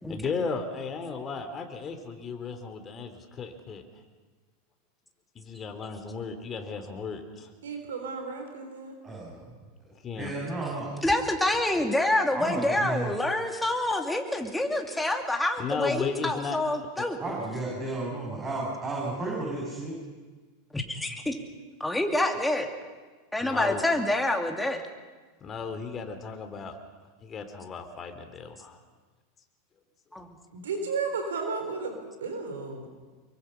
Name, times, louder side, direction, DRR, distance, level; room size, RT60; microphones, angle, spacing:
voice 1, 0.1-3.8 5.3-7.5 10.0-10.3 15.6-16.6 23.4-23.8 25.4-26.8 27.2-28.8, left 5 dB, 30° left, 6 dB, 2.8 m, -35 dB
voice 2, 7.6-8.9 30.5-32.9, right 4 dB, 75° right, 5 dB, 4.1 m, -33 dB
voice 3, 9.0-9.5 10.1-10.9 12.3-13.1 17.2-20.0, right 2 dB, 25° right, -3 dB, 6.9 m, -33 dB
voice 4, 11.0-17.2 20.7-21.4 21.8-22.7 23.3-24.8 30.1-30.4, left 1 dB, 5° left, 3 dB, 2.7 m, -27 dB
24.5 x 23.0 x 5.7 m, 1.4 s
hypercardioid pair, 90°, 0 cm